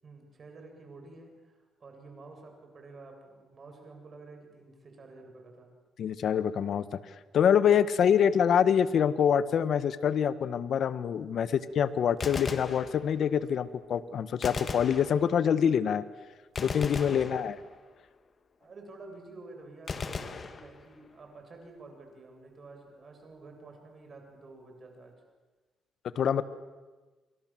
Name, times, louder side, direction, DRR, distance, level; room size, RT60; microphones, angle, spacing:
voice 1, 0.0-5.7 8.1-8.3 16.8-17.4 18.6-25.1 26.2-26.4, right 3 dB, 40° right, 3 dB, 7.9 m, -50 dB
voice 2, 6.0-7.0 7.3-16.0 16.6-17.6 26.1-26.4, left 8 dB, 65° left, 14 dB, 1.3 m, -25 dB
Gunshot gunfire, 12.1-13.4 14.4-15.6 16.6-18.0 19.9-21.2, left 5 dB, 40° left, 2.1 m, -38 dB
29.0 x 25.0 x 7.6 m, 1.3 s
cardioid pair, 90°, 0 cm